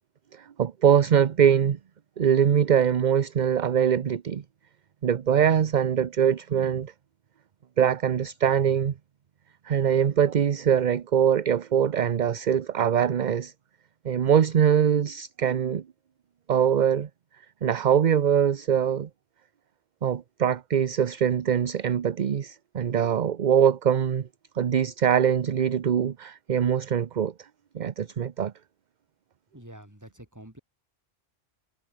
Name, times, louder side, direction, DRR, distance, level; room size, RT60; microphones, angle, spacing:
voice 1, 0.3-1.8 2.2-4.4 5.0-6.9 7.8-8.9 9.6-13.5 14.0-15.8 16.5-17.1 17.6-19.1 20.0-24.3 24.6-27.3 27.7-28.5, right 8 dB, 50° right, 0.8 m, -23 dB
voice 2, 29.5-30.6, right 1 dB, 15° right, 5.2 m, -46 dB
omnidirectional pair, 1.1 m